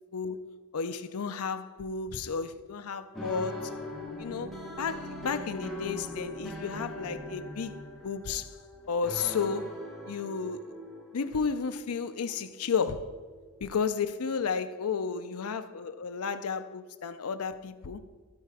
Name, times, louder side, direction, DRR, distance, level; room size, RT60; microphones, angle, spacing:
voice 1, 0.7-3.7 4.2-7.8 8.0-8.5 8.9-9.7 10.1-10.7 11.1-13.1 13.6-18.0, left 5 dB, 80° left, 0.5 m, -32 dB
sound 1, 3.1-14.6, left 2 dB, ahead, 1.4 m, -43 dB
sound 2, 3.5-8.3, equal, 45° right, 1.5 m, -45 dB
12.0 x 4.5 x 4.9 m
head